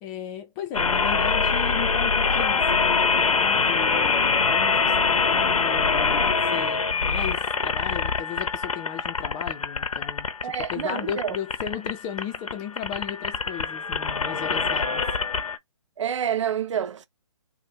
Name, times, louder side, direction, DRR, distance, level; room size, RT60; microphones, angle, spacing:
voice 1, 0.0-15.0, left 9 dB, 20° left, 0.6 m, -36 dB
sound 1, 0.7-15.6, left 5 dB, 80° left, 0.8 m, -24 dB
voice 2, 10.4-11.4 16.0-17.1, right 8 dB, 60° right, 0.7 m, -28 dB
3.3 x 2.2 x 4.0 m
figure-of-eight pair, 140°, 17 cm